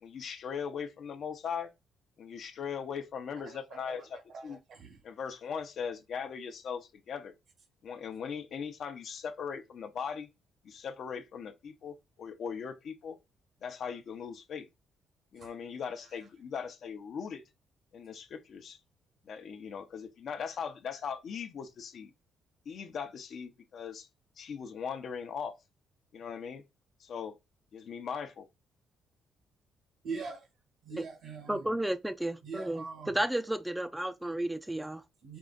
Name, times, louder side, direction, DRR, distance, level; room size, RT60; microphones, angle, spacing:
voice 1, 0.0-1.7 2.2-4.6 5.0-7.3 7.8-10.3 10.6-13.2 13.6-14.7 15.3-17.4 17.9-18.8 19.2-22.1 22.7-24.1 24.4-25.5 26.1-26.6 27.0-27.4 27.7-28.5, left 6 dB, 60° left, 0.7 m, -39 dB
voice 2, 3.4-5.0 15.4-15.5 30.0-30.5 30.9-31.7 32.4-33.2 35.2-35.4, right 4 dB, 75° right, 1.3 m, -43 dB
voice 3, 31.5-35.0, right 1 dB, 5° right, 0.4 m, -32 dB
4.7 x 2.5 x 3.9 m
cardioid pair, 90°, 0 cm